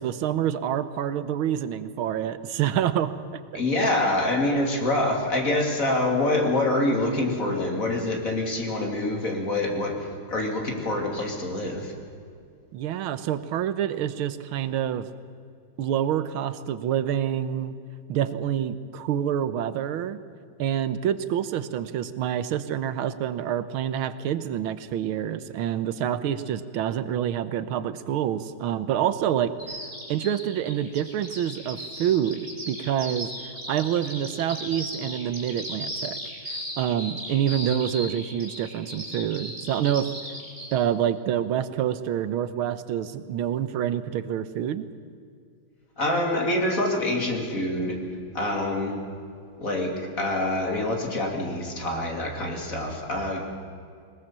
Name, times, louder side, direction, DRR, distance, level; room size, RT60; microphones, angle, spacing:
voice 1, 0.0-3.1 12.7-15.1 15.8-17.7 18.1-20.2 20.6-29.5 30.1-33.3 33.7-36.2 36.5-40.1 40.7-44.9, right 10 dB, 85° right, 13 dB, 1.7 m, -27 dB
voice 2, 3.5-11.9 46.0-48.0 48.3-49.0 49.6-53.5, left 1 dB, 40° left, 1 dB, 3.1 m, -26 dB
Bird vocalization bird call bird song, 29.6-40.7, right 1 dB, 30° right, 4.0 m, -36 dB
21.0 x 20.0 x 7.4 m, 2.3 s
omnidirectional pair, 2.2 m